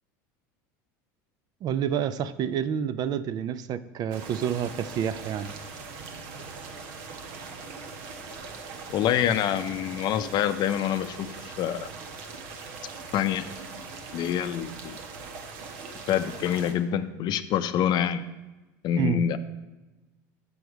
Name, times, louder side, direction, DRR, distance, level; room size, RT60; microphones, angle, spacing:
voice 1, 1.6-5.5 18.9-19.2, right 9 dB, 45° right, 14 dB, 0.4 m, -29 dB
sound 1, 4.1-16.7, right 4 dB, 70° right, 1.1 m, -41 dB
voice 2, 8.9-11.8 13.1-13.5 14.1-15.0 16.1-18.2 18.8-19.4, left 10 dB, 50° left, 11 dB, 0.5 m, -26 dB
7.1 x 6.2 x 4.7 m, 1.1 s
supercardioid pair, 95°, 9 cm